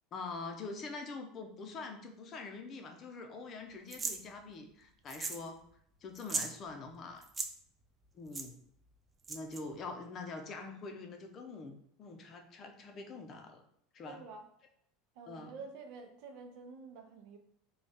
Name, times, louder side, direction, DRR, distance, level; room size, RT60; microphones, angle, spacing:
voice 1, 0.1-5.6 6.0-7.2 8.1-8.6 9.3-13.6 13.9-14.3 15.3-15.6, left 3 dB, 40° left, 4 dB, 0.6 m, -44 dB
sound 1, 3.9-4.2 5.1-5.5 5.7-5.8 6.2-6.5 7.2-7.5 8.3-8.5 9.2-9.6, right 4 dB, 20° right, 0.4 m, -37 dB
voice 2, 14.0-14.4 15.2-17.4, right 4 dB, 65° right, 5 dB, 0.6 m, -49 dB
4.0 x 2.3 x 3.5 m, 0.66 s
supercardioid pair, 125°, 0 cm